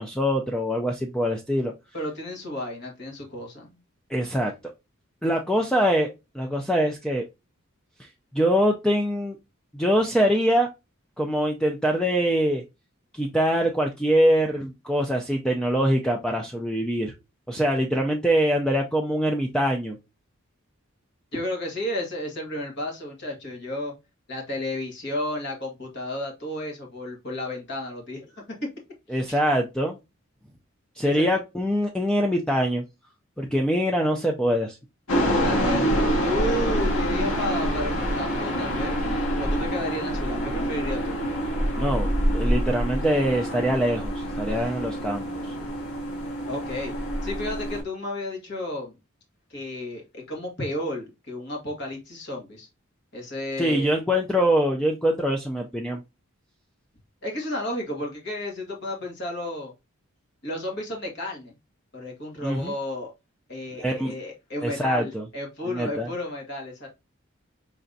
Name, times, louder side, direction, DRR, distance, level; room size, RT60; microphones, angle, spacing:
voice 1, 0.0-1.7 4.1-4.5 5.2-6.1 6.3-7.2 8.0-8.1 8.3-9.4 9.7-10.7 11.2-12.6 13.1-17.1 17.5-20.0 29.1-30.0 31.0-32.8 33.4-34.8 41.8-45.5 53.6-56.0 62.4-62.7 63.8-64.1 64.6-65.2 65.7-66.1, equal, 5° left, 0.4 m, -24 dB
voice 2, 1.9-3.8 21.3-23.9 24.3-28.7 29.3-29.4 31.0-31.4 35.3-39.0 39.4-41.2 46.5-46.9 47.2-48.9 49.5-52.7 53.1-54.0 57.2-59.7 60.4-61.5 61.9-63.1 63.5-66.9, left 1 dB, 55° left, 1.8 m, -32 dB
sound 1, 35.1-47.8, equal, 80° left, 1.7 m, -26 dB
5.0 x 3.3 x 2.6 m
head